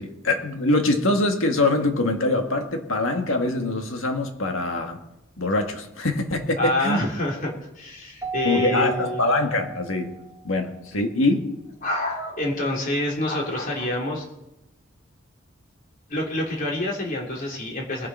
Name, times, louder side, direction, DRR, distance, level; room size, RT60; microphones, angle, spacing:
voice 1, 0.0-5.0 5.4-7.0 8.4-10.2 10.4-11.5, left 2 dB, 80° left, 1.9 m, -23 dB
voice 2, 6.6-9.2 11.8-14.2 16.1-18.1, left 1 dB, 45° left, 3.5 m, -27 dB
Keyboard (musical), 8.2-10.5, right 5 dB, 15° right, 1.3 m, -34 dB
21.0 x 7.5 x 5.6 m
head